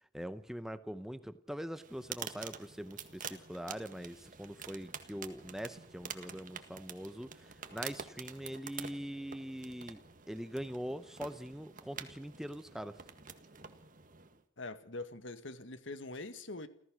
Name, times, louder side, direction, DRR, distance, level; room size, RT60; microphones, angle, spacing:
voice 1, 0.1-10.0 10.3-13.0, equal, ahead, 12 dB, 0.8 m, -43 dB
sound 1, 1.7-14.4, right 7 dB, 45° right, 1.7 m, -48 dB
voice 2, 14.6-16.7, left 2 dB, 75° left, 11 dB, 1.9 m, -43 dB
29.0 x 14.5 x 6.4 m, 0.64 s
head